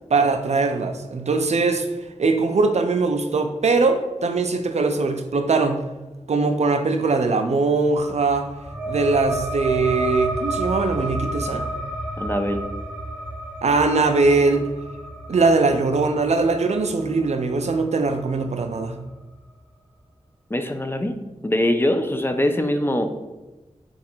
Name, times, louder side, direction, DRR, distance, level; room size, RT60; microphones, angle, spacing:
voice 1, 0.1-1.9 2.2-5.8 6.3-8.5 8.9-11.6 13.6-14.7 15.3-19.0, right 3 dB, 65° right, 6 dB, 0.4 m, -21 dB
sound 1, 8.0-19.1, right 1 dB, 5° right, 0.9 m, -31 dB
voice 2, 12.2-12.6 20.5-21.1 21.4-23.2, left 1 dB, 20° left, 6 dB, 0.4 m, -22 dB
3.9 x 2.4 x 4.4 m, 1.1 s
wide cardioid pair, 65°, 12 cm